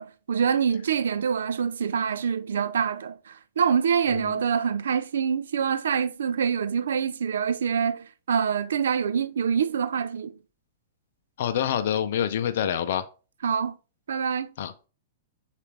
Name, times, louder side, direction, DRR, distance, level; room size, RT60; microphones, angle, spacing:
voice 1, 0.0-10.3 13.4-13.7 14.1-14.5, right 7 dB, 90° right, 0.3 m, -25 dB
voice 2, 11.4-13.0 14.6-14.9, left 9 dB, 60° left, 0.5 m, -27 dB
6.7 x 2.5 x 3.2 m
hypercardioid pair, 150°, 0 cm